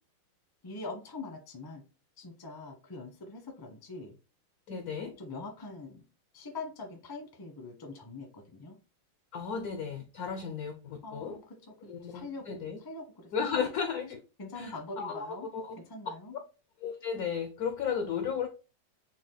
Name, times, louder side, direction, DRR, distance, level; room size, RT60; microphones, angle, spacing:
voice 1, 0.6-1.8 2.2-4.1 5.2-6.0 6.3-8.7 11.0-13.7 14.4-15.5 15.8-16.3, left 3 dB, 25° left, 3 dB, 0.5 m, -43 dB
voice 2, 4.7-5.1 9.3-11.4 11.9-12.8 13.3-14.2 14.6-15.3 15.5-15.8 16.8-18.5, left 6 dB, 80° left, 7 dB, 0.8 m, -34 dB
5.9 x 2.3 x 3.8 m, 0.31 s
omnidirectional pair, 2.3 m